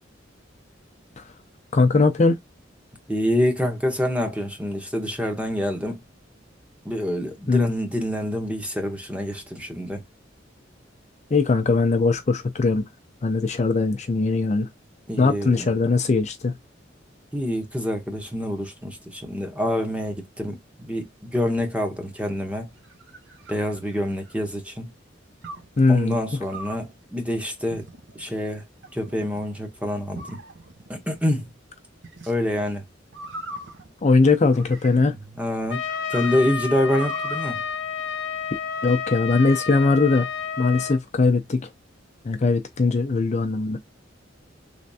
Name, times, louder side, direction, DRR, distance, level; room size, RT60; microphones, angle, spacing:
voice 1, 1.7-2.4 7.5-7.7 11.3-12.8 13.2-14.7 15.2-16.5 25.8-26.2 34.0-35.1 38.8-40.3 40.6-41.6 42.2-43.8, left 3 dB, 40° left, 0.5 m, -20 dB
voice 2, 3.1-6.0 6.8-10.0 15.1-15.7 17.3-22.7 23.5-24.9 25.9-27.8 28.2-28.6 28.9-30.4 30.9-31.5 32.3-32.8 35.0-35.8 36.1-37.6, left 1 dB, 5° right, 0.8 m, -26 dB
sound 1, 22.6-24.4 25.4-25.8 26.5-26.9 27.7-28.2 28.8-29.4 30.1-30.9 32.0-32.3 33.1-35.2 35.7-37.5, right 2 dB, 70° right, 0.9 m, -39 dB
Trumpet, 35.7-41.0, left 6 dB, 90° left, 0.5 m, -30 dB
3.4 x 3.1 x 2.7 m
head